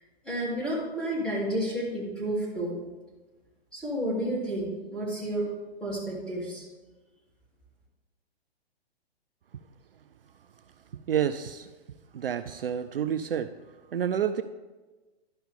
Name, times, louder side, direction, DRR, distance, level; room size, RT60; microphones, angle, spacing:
voice 1, 0.2-2.8 3.7-5.5 5.8-6.6, right 1 dB, 5° left, -7 dB, 2.5 m, -31 dB
voice 2, 11.1-11.7 12.1-13.5 13.9-14.4, right 9 dB, 60° right, 10 dB, 0.4 m, -29 dB
11.5 x 5.7 x 3.6 m, 1.2 s
figure-of-eight pair, 120°, 32 cm